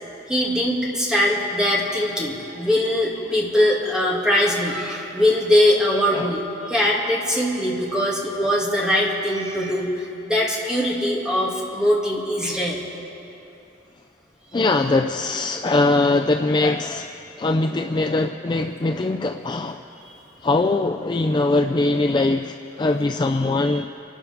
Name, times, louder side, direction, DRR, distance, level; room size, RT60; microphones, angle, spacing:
voice 1, 0.3-12.8 19.9-20.2 23.6-23.8, left 1 dB, 5° right, -5 dB, 2.3 m, -22 dB
voice 2, 14.5-17.1 17.4-19.8 20.4-23.9, left 2 dB, 25° left, 5 dB, 0.4 m, -21 dB
29.0 x 12.5 x 3.5 m, 2.9 s
head